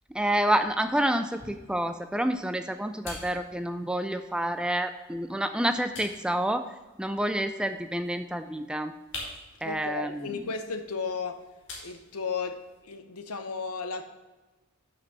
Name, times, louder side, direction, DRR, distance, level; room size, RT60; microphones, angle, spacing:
voice 1, 0.1-6.7 7.0-8.9 9.6-10.4, right 1 dB, 5° right, 9 dB, 0.3 m, -28 dB
sound 1, 0.8-12.8, left 2 dB, 55° left, 2.3 m, -48 dB
voice 2, 9.6-11.4 11.8-12.6 12.8-14.0, left 5 dB, 85° left, 8 dB, 0.9 m, -34 dB
6.3 x 6.0 x 7.1 m, 1.2 s
head